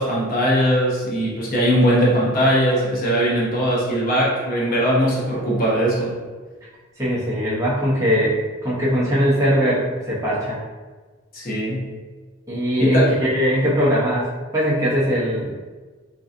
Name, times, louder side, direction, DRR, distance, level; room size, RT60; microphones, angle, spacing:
voice 1, 0.0-6.2 11.3-11.9 12.8-13.1, equal, 40° left, -5 dB, 0.8 m, -20 dB
voice 2, 7.0-10.6 12.5-15.6, equal, 15° right, -8 dB, 0.7 m, -21 dB
3.7 x 2.6 x 2.5 m, 1.4 s
head